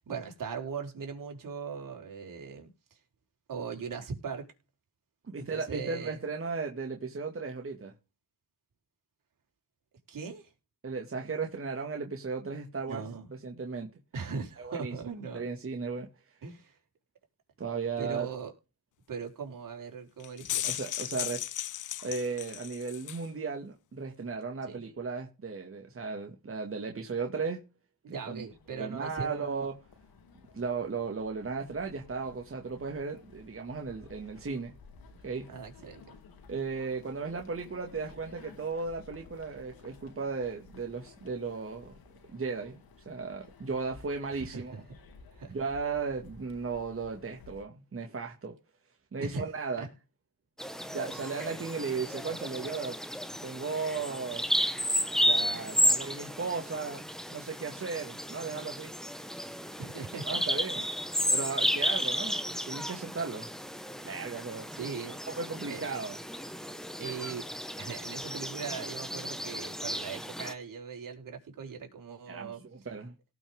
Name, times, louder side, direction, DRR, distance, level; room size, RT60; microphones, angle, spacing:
voice 1, 0.0-3.0 3.5-4.5 5.4-6.2 10.1-10.5 12.9-13.3 14.1-15.5 16.4-16.8 18.0-18.5 19.1-20.7 24.7-24.8 28.0-29.7 35.5-36.1 44.3-44.8 45.3-45.5 49.2-49.4 49.8-49.9 51.4-51.5 59.8-60.4 60.7-60.9 64.7-65.2 65.7-65.8 67.0-67.5 67.8-72.6, right 5 dB, 60° right, 4.4 m, -39 dB
voice 2, 5.2-7.9 10.8-13.0 13.4-13.9 14.6-14.9 15.3-16.1 17.6-18.3 20.6-21.4 22.0-27.6 28.1-29.7 30.5-34.7 35.2-35.5 36.5-41.9 42.3-44.7 45.5-48.5 49.1-49.9 50.9-53.0 53.4-54.5 55.3-57.0 57.3-58.9 60.2-60.8 61.3-63.5 64.0-64.7 65.3-66.2 72.3-73.1, right 4 dB, 35° right, 2.2 m, -36 dB
sound 1, 20.2-23.3, left 12 dB, 55° left, 0.6 m, -36 dB
sound 2, 28.5-47.6, left 4 dB, 75° left, 3.0 m, -55 dB
Bird vocalization bird call bird song, 50.6-70.5, equal, ahead, 1.5 m, -33 dB
18.0 x 6.1 x 3.7 m
cardioid pair, 75°, 36 cm